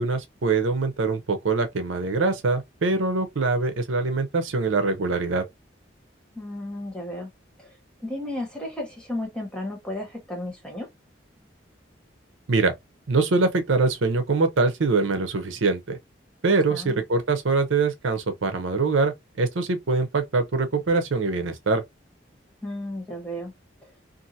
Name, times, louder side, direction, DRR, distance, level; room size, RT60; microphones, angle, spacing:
voice 1, 0.0-5.4 12.5-12.7 13.1-16.0 16.4-21.8, right 3 dB, 85° right, 0.7 m, -23 dB
voice 2, 6.3-7.3 7.6-7.7 8.0-10.9 16.7-17.0 22.6-23.5 23.8-23.9, left 1 dB, 5° left, 1.0 m, -33 dB
2.7 x 2.5 x 2.6 m
head